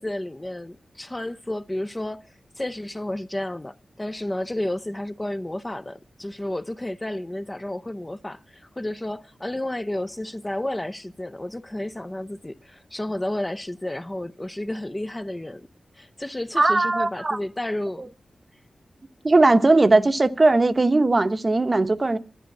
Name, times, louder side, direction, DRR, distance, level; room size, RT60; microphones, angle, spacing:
voice 1, 0.0-2.2 2.6-15.7 15.9-18.1, left 1 dB, 20° left, 0.6 m, -31 dB
voice 2, 16.6-17.4 18.0-18.1 19.2-22.2, right 2 dB, 35° right, 0.9 m, -19 dB
12.0 x 9.3 x 7.2 m
wide cardioid pair, 75°, 0 cm